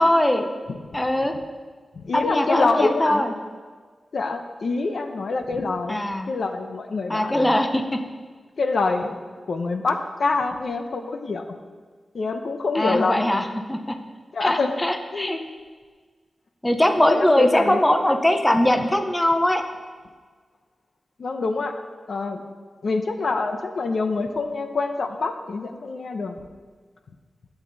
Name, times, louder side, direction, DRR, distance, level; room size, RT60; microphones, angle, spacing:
voice 1, 0.0-0.5 0.9-1.3 2.1-3.3 5.9-6.3 7.1-7.8 12.7-13.9 14.4-15.4 16.6-19.6, left 1 dB, 10° left, 5 dB, 0.8 m, -21 dB
voice 2, 0.7-1.0 1.9-3.2 4.1-7.6 8.6-11.4 12.1-13.3 14.3-14.7 15.1-15.4 17.0-17.8 18.1-18.2 21.2-21.8 22.1-22.4 22.8-26.4, left 3 dB, 65° left, 6 dB, 0.8 m, -26 dB
14.0 x 8.3 x 4.0 m, 1.5 s
wide cardioid pair, 110°, 0 cm